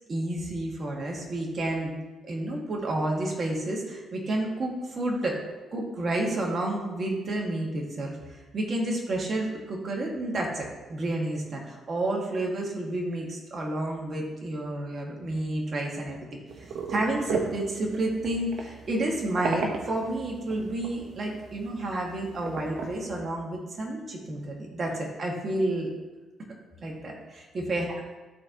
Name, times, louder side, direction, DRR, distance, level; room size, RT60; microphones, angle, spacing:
voice 1, 0.1-2.0 2.2-5.3 5.7-16.4 16.9-25.9 26.8-28.0, right 1 dB, 40° right, -2 dB, 2.1 m, -30 dB
sound 1, 16.5-23.0, right 4 dB, 70° right, 1.1 m, -36 dB
13.0 x 4.4 x 3.1 m, 1.2 s
cardioid pair, 90°, 0 cm